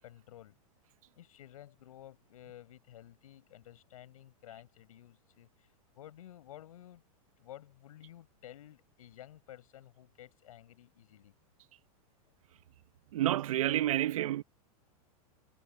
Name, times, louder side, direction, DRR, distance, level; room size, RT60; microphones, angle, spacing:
voice 1, 0.0-0.6 1.1-7.0 7.4-11.3, left 12 dB, 70° left, 7.2 m, -53 dB
voice 2, 13.1-14.4, right 13 dB, 65° right, 0.8 m, -29 dB
supercardioid pair, 180°, 19 cm